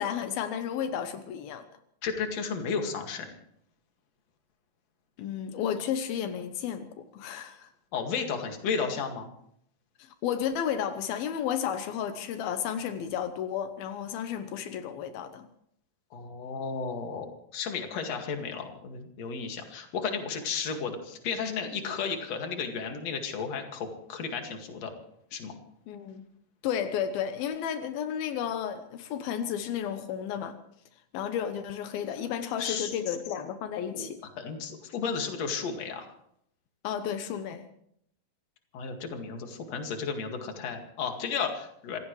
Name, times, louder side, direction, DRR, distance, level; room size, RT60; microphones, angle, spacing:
voice 1, 0.0-1.6 5.2-7.7 10.0-15.4 25.9-26.2 26.6-30.6 31.1-34.2 36.8-37.7, left 9 dB, 85° left, 9 dB, 2.8 m, -32 dB
voice 2, 2.0-3.3 7.9-9.3 16.1-24.9 25.3-25.5 32.6-33.1 33.9-34.1 34.4-36.1 38.7-42.0, left 5 dB, 50° left, 4 dB, 3.0 m, -33 dB
26.5 x 17.0 x 3.2 m, 0.70 s
omnidirectional pair, 4.2 m